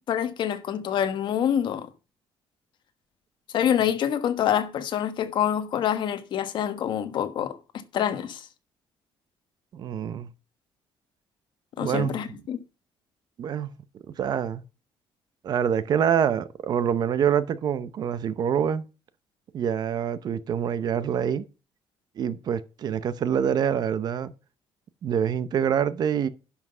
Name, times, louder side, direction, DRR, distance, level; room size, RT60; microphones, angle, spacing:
voice 1, 0.1-1.9 3.5-7.6 7.9-8.5 11.8-12.6, left 9 dB, 55° left, 1.2 m, -26 dB
voice 2, 9.7-10.3 11.8-12.2 13.4-13.7 14.1-14.6 15.4-18.9 19.5-21.4 22.2-24.3 25.0-26.3, right 8 dB, 45° right, 0.8 m, -26 dB
11.0 x 5.8 x 5.5 m
cardioid pair, 160°, 9 cm